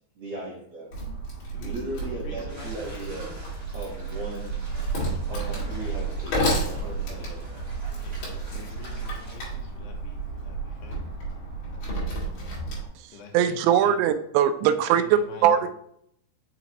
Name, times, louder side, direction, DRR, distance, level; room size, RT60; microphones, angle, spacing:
voice 1, 0.1-0.9 1.6-3.3 3.7-4.5 5.3-7.6, right 1 dB, 70° right, 1.5 m, -37 dB
Wood, 0.9-12.9, right 2 dB, 60° left, 3.6 m, -31 dB
voice 2, 1.5-3.3 8.0-11.0 13.1-14.0 14.8-15.5, left 4 dB, 75° left, 3.0 m, -46 dB
sound 1, 2.5-9.3, left 1 dB, 30° right, 3.0 m, -45 dB
voice 3, 13.0-15.7, right 9 dB, 85° right, 2.8 m, -22 dB
6.6 x 6.0 x 2.9 m
omnidirectional pair, 5.0 m